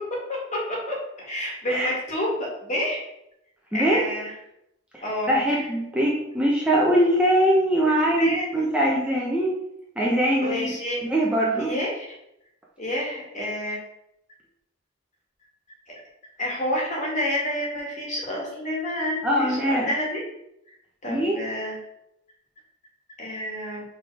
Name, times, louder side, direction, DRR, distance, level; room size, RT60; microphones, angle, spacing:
voice 1, 0.5-0.9 1.2-3.0 3.7-4.3 5.0-5.7 7.9-8.8 10.4-11.0 11.6-12.1 12.8-13.8 15.9-16.0 16.4-20.2 21.0-21.8 23.2-23.8, left 1 dB, 35° left, -3 dB, 1.9 m, -29 dB
voice 2, 3.7-4.0 4.9-9.5 10.0-10.7 11.1-11.7 19.2-19.9 21.1-21.4, right 1 dB, 5° right, -5 dB, 0.8 m, -22 dB
5.1 x 4.1 x 4.7 m, 0.82 s
head